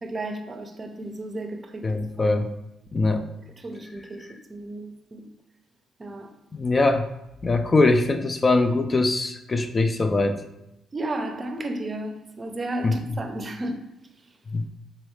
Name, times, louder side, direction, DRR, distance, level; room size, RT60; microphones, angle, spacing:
voice 1, 0.0-2.4 3.6-5.3 6.0-6.3 10.9-13.8, right 1 dB, 30° right, 0.6 m, -33 dB
voice 2, 1.8-2.5 2.9-3.3 6.5-7.1 7.4-10.4 12.8-12.9 14.5-14.6, left 2 dB, 30° left, 0.3 m, -22 dB
3.9 x 3.0 x 3.2 m
cardioid pair, 90°, 0 cm